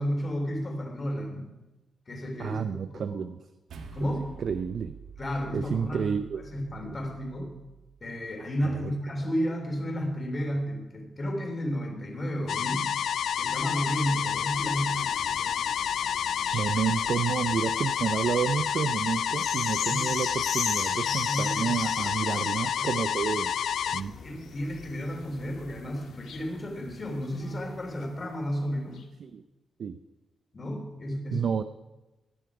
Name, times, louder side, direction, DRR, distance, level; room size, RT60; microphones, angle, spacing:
voice 1, 0.0-1.5 2.1-2.6 3.0-3.2 3.9-4.3 5.2-6.1 6.4-7.5 8.0-12.9 13.4-15.1 19.7-20.1 21.0-21.8 22.2-22.9 23.9-29.0 30.5-31.4, equal, 30° left, 2 dB, 3.2 m, -32 dB
voice 2, 2.4-3.4 4.4-5.0 5.5-6.5 8.6-8.9 16.5-23.5 23.9-24.1 29.2-29.4 29.8-30.0 31.3-31.6, right 7 dB, 55° right, 11 dB, 0.5 m, -30 dB
sound 1, 3.7-8.3, right 6 dB, 85° right, 1.5 m, -47 dB
sound 2, 12.5-28.3 29.0-29.1, left 6 dB, 90° left, 1.8 m, -40 dB
sound 3, 12.5-24.0, left 8 dB, 75° left, 0.4 m, -29 dB
18.0 x 11.5 x 4.9 m, 1.1 s
wide cardioid pair, 160°, 0 cm